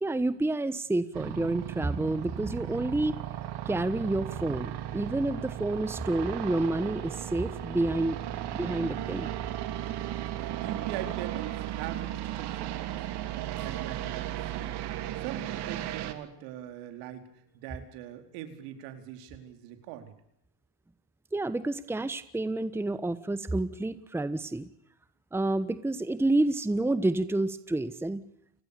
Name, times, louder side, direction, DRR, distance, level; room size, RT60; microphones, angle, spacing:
voice 1, 0.0-3.1 3.7-8.2 8.5-9.3 21.3-24.7 25.3-28.2, right 2 dB, 5° right, 14 dB, 1.1 m, -29 dB
sound 1, 1.1-16.1, right 12 dB, 55° right, 3.2 m, -35 dB
voice 2, 10.4-13.0 13.4-14.7 15.2-20.1, right 11 dB, 75° right, 7 dB, 4.6 m, -42 dB
Strum, 13.6-17.8, right 6 dB, 40° right, 4.3 m, -54 dB
29.5 x 20.5 x 6.9 m, 0.74 s
supercardioid pair, 110°, 48 cm